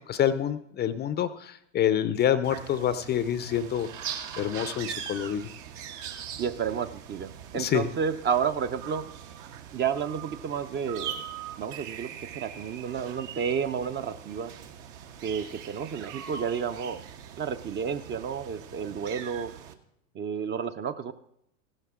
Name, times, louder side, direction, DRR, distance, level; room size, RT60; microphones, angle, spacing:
voice 1, 0.1-3.9 4.4-5.5 7.5-7.9, left 10 dB, 25° left, 13 dB, 0.6 m, -27 dB
sound 1, 2.4-19.7, right 8 dB, 60° right, 1.3 m, -41 dB
voice 2, 6.4-9.0 9.7-11.2 11.6-14.5 15.2-17.0 17.4-19.5 20.1-21.1, right 7 dB, 25° right, 10 dB, 0.6 m, -31 dB
15.0 x 12.0 x 3.7 m, 0.76 s
hypercardioid pair, 100°, 41 cm